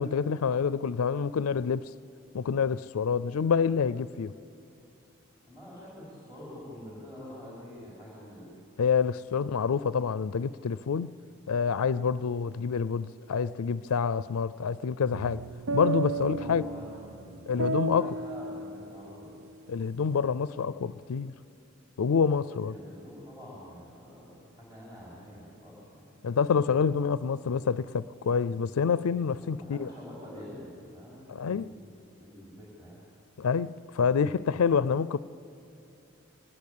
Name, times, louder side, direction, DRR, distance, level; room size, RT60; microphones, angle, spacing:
voice 1, 0.0-1.9 2.3-4.3 8.8-11.1 11.5-15.4 15.7-16.6 17.5-18.1 19.7-21.3 22.0-22.8 26.2-29.9 31.3-31.7 33.4-35.2, left 6 dB, 90° left, 0.4 m, -27 dB
voice 2, 5.4-8.5 16.2-19.3 22.6-26.1 29.4-31.8 32.2-33.0, equal, 20° right, 5.0 m, -46 dB
sound 1, 15.1-19.5, right 3 dB, 75° right, 0.6 m, -34 dB
23.0 x 19.5 x 8.5 m
head